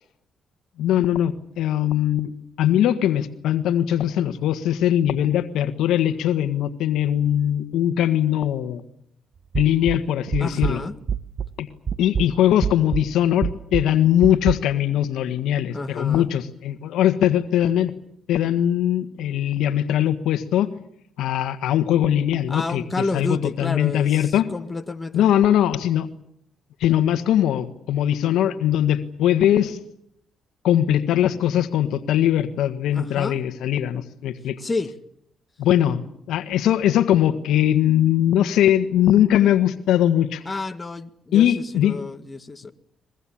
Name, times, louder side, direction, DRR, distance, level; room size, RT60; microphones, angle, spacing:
voice 1, 0.8-2.3 2.6-8.8 9.5-10.8 11.6-11.7 12.0-17.9 18.3-20.7 21.2-24.5 25.1-26.1 26.8-29.8 30.6-34.6 35.6-36.0 36.3-40.4 41.3-42.0, left 11 dB, 85° left, 1.5 m, -21 dB
sound 1, 9.5-11.6 11.9-14.5, right 7 dB, 45° right, 1.1 m, -27 dB
voice 2, 10.4-11.0 15.7-16.3 22.5-25.3 32.9-33.4 34.6-34.9 40.5-42.7, left 3 dB, 25° left, 1.9 m, -30 dB
23.5 x 22.5 x 8.7 m
cardioid pair, 90°, 0 cm